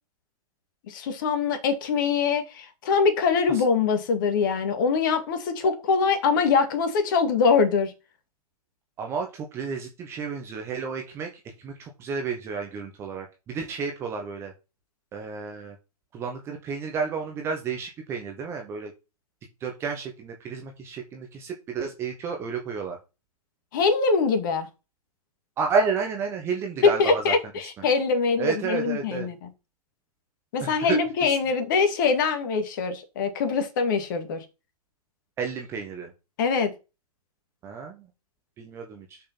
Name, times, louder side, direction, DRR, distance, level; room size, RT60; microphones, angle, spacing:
voice 1, 0.9-7.9 23.7-24.7 26.8-29.4 30.5-34.4 36.4-36.7, left 5 dB, 30° left, 2.1 m, -23 dB
voice 2, 9.0-11.3 11.6-14.5 15.1-15.7 16.1-18.9 19.6-23.0 25.6-27.3 27.8-27.9 28.4-29.3 30.6-31.4 35.4-36.1 37.6-38.1 38.6-39.2, right 5 dB, 15° right, 1.1 m, -31 dB
6.3 x 5.7 x 5.8 m
figure-of-eight pair, 130°, 20 cm